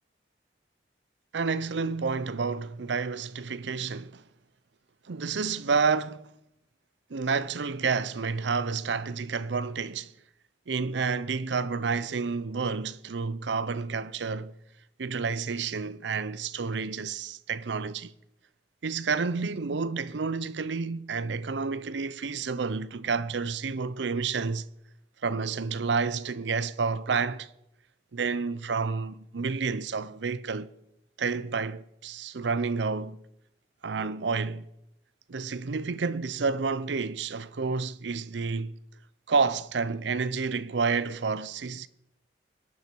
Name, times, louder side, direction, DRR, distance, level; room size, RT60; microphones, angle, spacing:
voice 1, 1.3-4.2 5.1-6.3 7.1-10.1 10.7-14.5 15.0-18.1 18.8-24.7 25.2-27.5 28.1-30.7 31.2-33.2 33.8-34.7 35.3-38.7 39.3-41.9, right 4 dB, 75° right, 0.6 m, -30 dB
21.5 x 10.0 x 4.5 m
head